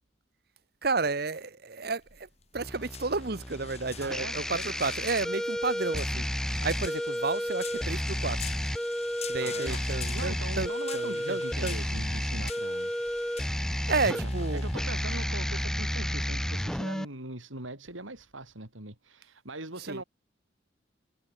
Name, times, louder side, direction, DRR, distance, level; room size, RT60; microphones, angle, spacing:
voice 1, 0.8-2.3 2.5-8.4 9.3-11.7 13.9-14.6 19.8-20.0, right 3 dB, 50° right, 1.0 m, -32 dB
sound 1, 2.0-16.6, left 8 dB, 35° left, 6.5 m, -46 dB
sound 2, 2.5-17.0, equal, 5° left, 1.8 m, -32 dB
voice 2, 4.0-4.7 9.4-9.8 10.1-13.3 14.1-20.0, right 2 dB, 85° right, 6.1 m, -41 dB
head